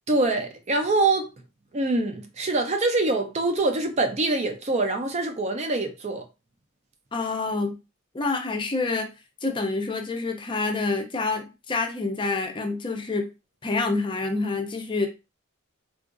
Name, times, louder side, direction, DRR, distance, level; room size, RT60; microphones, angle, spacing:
voice 1, 0.1-1.3 1.7-6.2, right 2 dB, 30° right, 0.4 m, -24 dB
voice 2, 7.1-7.8 8.1-9.1 9.4-13.3 13.6-15.1, left 3 dB, 25° left, 0.5 m, -27 dB
3.7 x 2.4 x 2.5 m
head